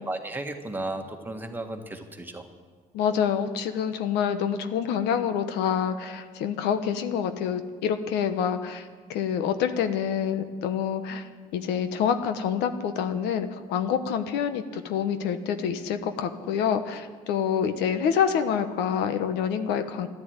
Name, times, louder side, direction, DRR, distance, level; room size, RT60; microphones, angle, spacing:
voice 1, 0.1-2.4, right 2 dB, 10° right, 4 dB, 1.6 m, -34 dB
voice 2, 2.9-20.1, left 8 dB, 90° left, 9 dB, 1.1 m, -27 dB
13.5 x 11.5 x 8.8 m, 1.5 s
cardioid pair, 110°, 17 cm